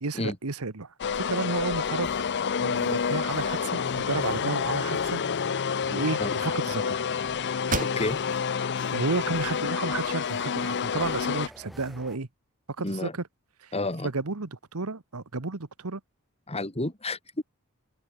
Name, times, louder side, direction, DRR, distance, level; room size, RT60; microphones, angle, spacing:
voice 1, 0.0-2.1 2.6-5.2 5.9-7.0 8.6-8.7 8.9-12.3 12.8-13.3 13.6-13.8 14.0-16.0, right 3 dB, 75° right, 1.3 m, -32 dB
sound 1, 1.0-11.5, left 6 dB, 50° left, 0.6 m, -28 dB
sound 2, 2.0-12.2, equal, ahead, 6.4 m, -49 dB
sound 3, 7.6-8.5 9.0-9.1 9.6-10.5, right 4 dB, 40° right, 2.5 m, -34 dB
voice 2, 13.7-14.1 16.5-17.4, left 2 dB, 30° left, 3.8 m, -30 dB
head